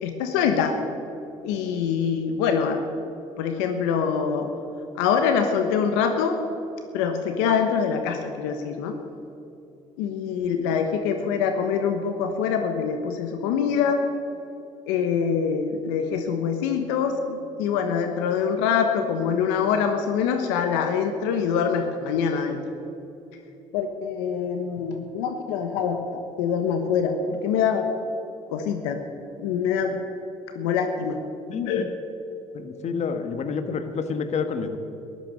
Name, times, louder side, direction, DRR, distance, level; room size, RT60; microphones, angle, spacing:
voice 1, 0.0-0.8 1.4-2.8 3.4-4.5 5.0-6.4 6.9-9.0 10.0-14.0 14.9-22.6 23.7-27.9 28.5-29.0 29.4-30.0 30.5-31.2 31.6-31.8, left 6 dB, 85° left, 6 dB, 1.2 m, -24 dB
voice 2, 31.5-31.9 32.5-34.8, left 5 dB, 50° left, 8 dB, 1.5 m, -29 dB
14.0 x 12.5 x 6.5 m, 2.8 s
supercardioid pair, 75°, 14 cm